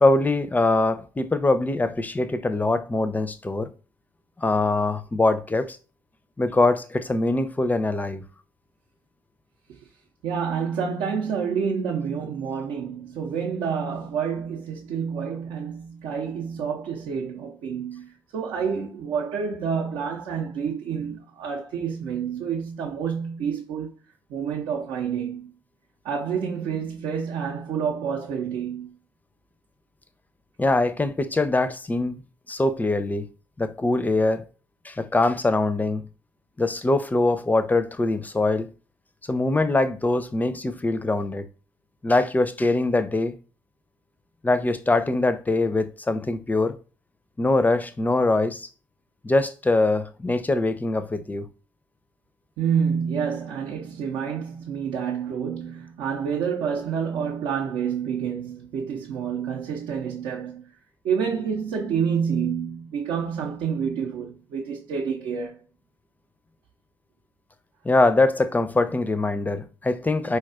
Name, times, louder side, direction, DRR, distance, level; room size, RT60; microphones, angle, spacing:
voice 1, 0.0-3.7 4.4-5.8 6.4-8.2 30.6-32.2 32.5-33.3 33.6-34.4 34.8-36.0 36.6-38.7 39.3-41.5 42.0-43.3 44.4-46.8 47.4-48.7 49.2-51.5 67.8-70.4, left 2 dB, 15° left, 0.4 m, -23 dB
voice 2, 10.2-23.9 24.3-25.5 26.0-28.9 52.6-60.6 61.0-65.6, right 7 dB, 70° right, 0.5 m, -28 dB
4.2 x 2.3 x 2.4 m
hypercardioid pair, 45°, 9 cm